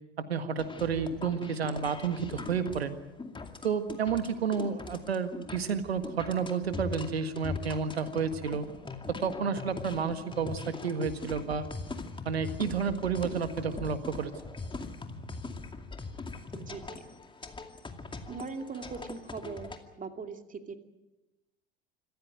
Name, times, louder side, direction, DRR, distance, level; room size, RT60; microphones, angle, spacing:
voice 1, 0.2-3.0 3.6-8.7 9.1-11.7 12.3-14.3, right 6 dB, 85° right, 10 dB, 1.8 m, -31 dB
sound 1, 0.6-19.8, left 3 dB, 15° left, 2.4 m, -41 dB
voice 2, 16.5-17.0 18.3-20.8, right 4 dB, 25° right, 6 dB, 2.6 m, -40 dB
26.5 x 14.5 x 9.2 m, 1.0 s
hypercardioid pair, 75°, 30 cm